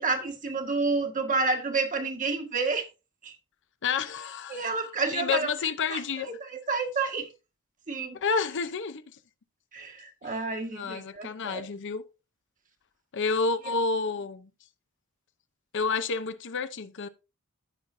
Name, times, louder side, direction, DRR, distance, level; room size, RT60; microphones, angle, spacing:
voice 1, 0.0-2.8 3.2-3.3 4.5-5.5 5.9-6.0 6.5-7.3 7.9-8.2 9.7-11.6, right 4 dB, 35° right, 1.6 m, -29 dB
voice 2, 3.8-6.3 8.1-9.0 10.2-10.4 10.7-12.0 13.1-14.5 15.7-17.1, left 5 dB, 55° left, 0.7 m, -30 dB
15.0 x 5.6 x 2.6 m
head